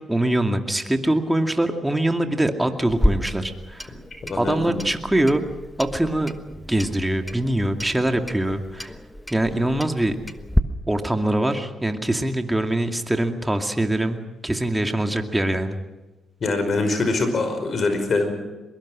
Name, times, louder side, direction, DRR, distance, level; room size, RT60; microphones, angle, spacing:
voice 1, 0.0-3.9 4.4-5.5 5.8-6.3 6.7-8.9 9.3-10.2 10.9-15.8, right 1 dB, 10° right, 5 dB, 2.4 m, -23 dB
Clock, 2.9-10.6, left 1 dB, 5° left, 1.3 m, -30 dB
voice 2, 4.2-4.9 16.4-18.3, left 3 dB, 50° left, 7 dB, 5.3 m, -23 dB
22.5 x 22.0 x 6.3 m, 1.1 s
cardioid pair, 70°, 0 cm